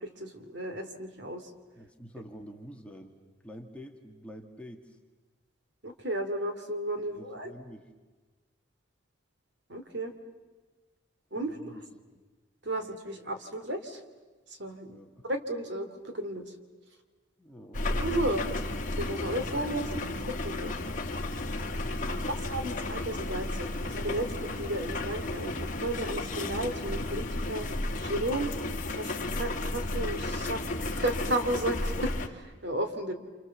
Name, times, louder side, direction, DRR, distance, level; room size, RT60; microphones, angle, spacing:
voice 1, 0.0-1.4 5.8-7.5 9.7-10.1 11.3-11.5 12.6-14.0 14.6-15.0 15.3-16.4 18.0-18.4 19.0-20.7 22.3-27.7 28.0-28.5 28.9-30.6 30.9-33.1, right 1 dB, 60° right, 7 dB, 2.8 m, -33 dB
voice 2, 1.8-3.1 3.4-5.0 7.0-7.9 11.3-12.2 14.9-15.3 17.4-17.9 22.0-22.4, equal, 5° left, 2 dB, 1.8 m, -48 dB
sound 1, 17.7-32.3, left 2 dB, 40° left, 2.0 m, -33 dB
29.5 x 27.5 x 7.3 m, 1.3 s
head